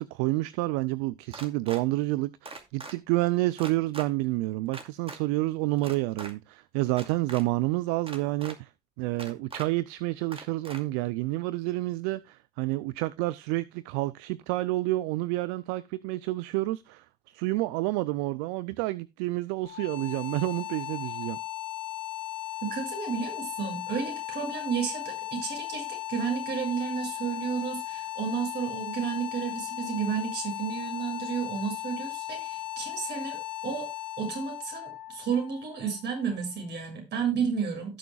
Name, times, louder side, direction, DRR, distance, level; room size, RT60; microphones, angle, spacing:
voice 1, 0.0-8.7 9.0-21.4, right 19 dB, 80° right, 0.5 m, -29 dB
sound 1, 1.3-1.8 2.5-2.9 3.6-4.1 4.7-5.2 5.8-6.3 6.9-7.4 8.1-8.6 9.2-9.7 10.3-10.8, right 3 dB, 30° right, 2.4 m, -41 dB
sound 2, 19.6-36.6, left 15 dB, 70° left, 3.7 m, -37 dB
voice 2, 22.6-33.9 34.2-38.0, right 7 dB, 60° right, 7.0 m, -32 dB
17.0 x 7.1 x 2.3 m
hypercardioid pair, 55°, 20 cm